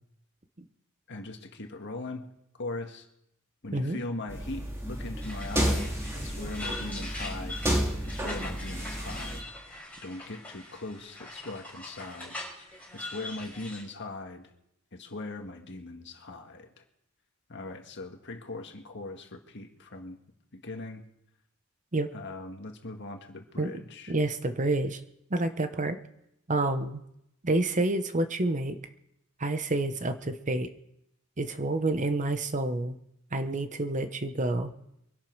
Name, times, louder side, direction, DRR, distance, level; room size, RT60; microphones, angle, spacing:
voice 1, 1.1-2.3 2.6-3.1 3.6-7.6 8.0-9.5 10.0-12.4 12.9-14.5 14.9-16.8 17.5-20.2 20.5-21.0 22.1-24.1, left 2 dB, 55° left, 4 dB, 1.8 m, -40 dB
sound 1, 4.3-9.4, equal, 15° right, 2.2 m, -31 dB
sound 2, 5.2-13.8, left 1 dB, 5° left, 5.8 m, -42 dB
voice 2, 24.1-25.0 25.3-26.0 26.5-27.0 27.4-28.8 29.4-30.7 31.4-33.0 33.3-34.7, right 2 dB, 35° right, 9 dB, 0.9 m, -28 dB
23.5 x 11.5 x 4.7 m, 0.80 s
head